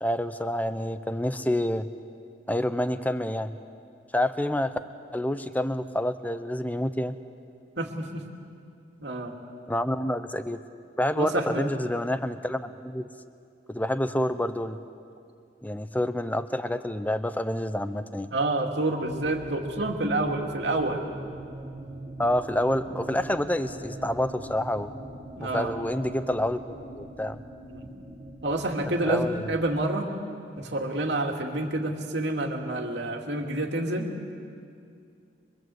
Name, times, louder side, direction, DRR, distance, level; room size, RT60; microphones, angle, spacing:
voice 1, 0.0-1.8 2.5-3.6 4.1-4.8 5.1-7.2 9.7-10.6 11.0-13.1 13.7-14.8 15.6-18.3 22.2-24.9 25.4-26.6 26.9-27.4 29.0-29.5, left 1 dB, 10° left, 11 dB, 0.8 m, -28 dB
voice 2, 7.8-8.2 9.0-9.3 11.2-11.7 18.3-21.0 25.4-25.7 27.7-27.9 28.4-30.1 30.6-34.3, right 2 dB, 75° right, 2 dB, 2.6 m, -28 dB
sound 1, 19.1-29.9, right 1 dB, 35° right, 1.5 m, -42 dB
24.5 x 24.0 x 7.9 m, 2.4 s
head